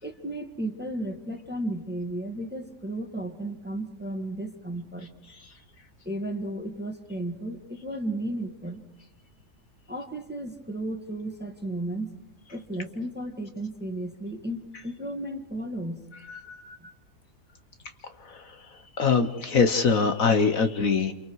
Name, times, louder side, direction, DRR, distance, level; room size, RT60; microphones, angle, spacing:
voice 1, 0.0-5.1 6.1-8.8 9.9-12.1 12.5-16.0 16.6-16.9, right 1 dB, 5° right, 5 dB, 1.7 m, -34 dB
voice 2, 16.3-16.6 18.2-18.6 19.0-21.1, left 5 dB, 55° left, 7 dB, 1.5 m, -23 dB
28.5 x 28.5 x 4.7 m, 0.87 s
omnidirectional pair, 1.8 m